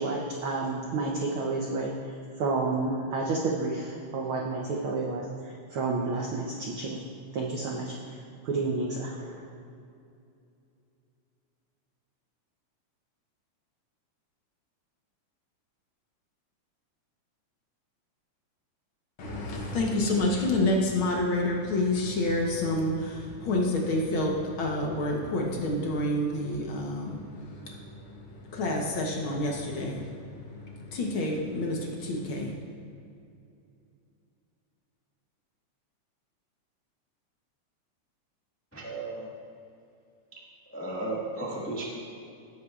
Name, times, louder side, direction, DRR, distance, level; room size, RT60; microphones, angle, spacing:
voice 1, 0.0-7.0 7.3-9.4, right 3 dB, 85° right, -2 dB, 1.1 m, -31 dB
voice 2, 19.2-32.6, left 1 dB, 65° left, -1 dB, 1.3 m, -29 dB
voice 3, 38.7-39.2 40.7-41.8, right 2 dB, 20° left, -5 dB, 0.3 m, -34 dB
16.5 x 8.2 x 2.4 m, 2.5 s
omnidirectional pair, 3.5 m